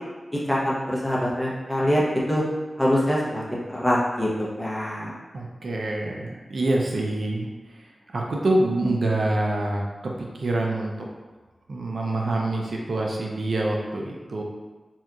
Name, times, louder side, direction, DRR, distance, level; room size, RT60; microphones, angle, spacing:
voice 1, 0.5-2.4 2.8-5.1, equal, ahead, -6 dB, 0.6 m, -24 dB
voice 2, 5.3-11.1 11.7-14.4, right 2 dB, 70° right, -1 dB, 0.3 m, -26 dB
2.8 x 2.3 x 2.3 m, 1.3 s
wide cardioid pair, 90°, 0 cm